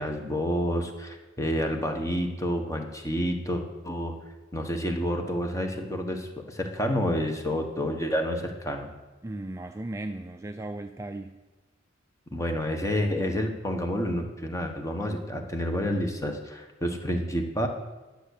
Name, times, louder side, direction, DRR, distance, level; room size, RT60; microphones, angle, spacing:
voice 1, 0.0-4.2 4.5-8.9 12.3-17.7, equal, 15° left, 4 dB, 1.2 m, -29 dB
voice 2, 9.2-11.3, right 2 dB, 15° right, 6 dB, 0.4 m, -36 dB
11.0 x 6.8 x 6.5 m, 1.2 s
head